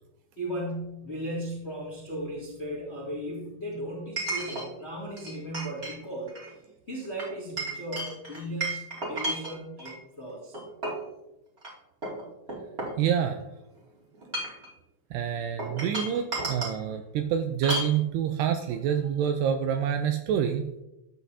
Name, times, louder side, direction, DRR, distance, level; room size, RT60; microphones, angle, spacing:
voice 1, 0.4-6.3 6.9-10.5, right 1 dB, 30° left, -4 dB, 1.2 m, -36 dB
Chink clink, 0.7-0.8 4.2-4.7 5.2-6.0 6.3-6.5 7.2-10.0 10.5-11.1 11.6-11.7 12.0-13.4 14.1-14.7 15.6-16.8 17.6-17.9, right 1 dB, 25° right, 1.5 m, -33 dB
voice 2, 13.0-13.4 15.1-20.8, right 8 dB, 85° right, 7 dB, 2.4 m, -27 dB
12.5 x 8.1 x 2.7 m, 0.92 s
omnidirectional pair, 5.1 m